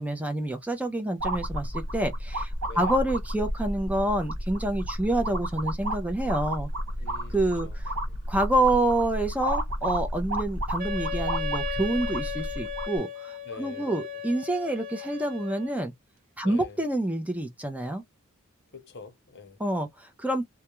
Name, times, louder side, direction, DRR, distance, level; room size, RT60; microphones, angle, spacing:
voice 1, 0.0-6.7 7.3-7.9 8.3-15.9 16.4-18.0 19.6-20.4, right 1 dB, 5° right, 0.5 m, -28 dB
sound 1, 1.2-13.0, right 1 dB, 80° right, 1.3 m, -31 dB
voice 2, 2.6-3.0 7.0-7.4 7.6-7.8 8.1-8.2 13.5-13.9 16.4-16.8 18.7-19.6, left 3 dB, 55° left, 0.7 m, -44 dB
Wind instrument woodwind instrument, 10.8-15.8, left 4 dB, 40° right, 0.8 m, -36 dB
2.3 x 2.2 x 2.9 m
head